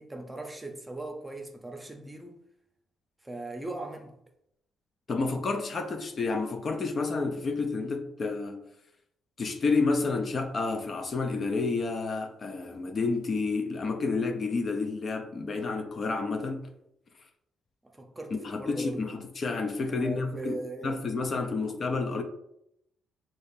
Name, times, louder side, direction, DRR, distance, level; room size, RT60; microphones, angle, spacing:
voice 1, 0.0-2.4 3.2-4.2 17.8-19.1 19.9-21.0 21.5-21.6, right 2 dB, 15° right, 0.7 m, -39 dB
voice 2, 5.1-8.6 9.4-16.7 18.3-20.6 20.8-22.2, left 3 dB, 45° left, 0.6 m, -30 dB
6.3 x 2.9 x 2.6 m
cardioid pair, 90°, 0 cm